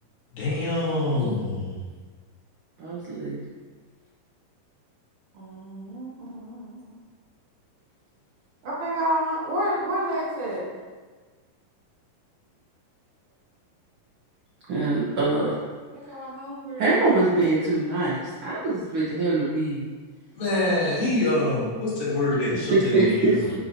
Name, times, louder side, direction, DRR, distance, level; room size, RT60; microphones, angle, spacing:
voice 1, 0.3-1.7 20.4-23.4, left 2 dB, 70° left, -8 dB, 3.4 m, -25 dB
voice 2, 2.8-3.4 14.7-15.5 16.8-19.8 22.7-23.5, right 2 dB, 85° right, -8 dB, 1.2 m, -23 dB
voice 3, 5.3-7.0 8.6-10.7 15.9-16.8, equal, 65° right, -5 dB, 2.3 m, -30 dB
8.7 x 4.1 x 2.8 m, 1.4 s
omnidirectional pair, 4.0 m